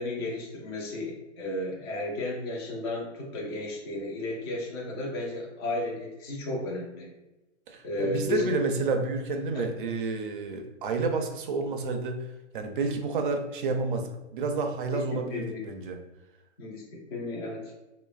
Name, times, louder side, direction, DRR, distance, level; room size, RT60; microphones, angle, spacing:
voice 1, 0.0-7.1 7.8-8.5 9.5-9.6 14.9-15.7 16.6-17.7, left 2 dB, 25° left, -3 dB, 0.4 m, -33 dB
voice 2, 7.7-12.3 12.5-16.0, right 3 dB, 45° right, 5 dB, 0.4 m, -30 dB
3.0 x 2.1 x 2.3 m, 0.99 s
hypercardioid pair, 140°, 36 cm